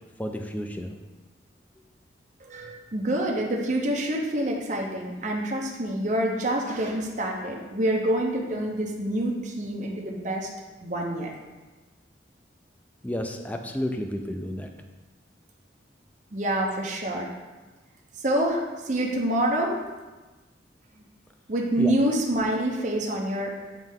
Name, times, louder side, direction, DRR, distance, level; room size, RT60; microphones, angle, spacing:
voice 1, 0.2-1.0 13.0-14.7 21.8-21.9, left 1 dB, 10° left, 5 dB, 0.4 m, -31 dB
voice 2, 2.4-10.5 10.8-11.3 16.3-17.3 18.2-19.8 21.5-23.5, right 1 dB, 40° right, -1 dB, 0.7 m, -27 dB
9.0 x 3.3 x 3.6 m, 1.2 s
head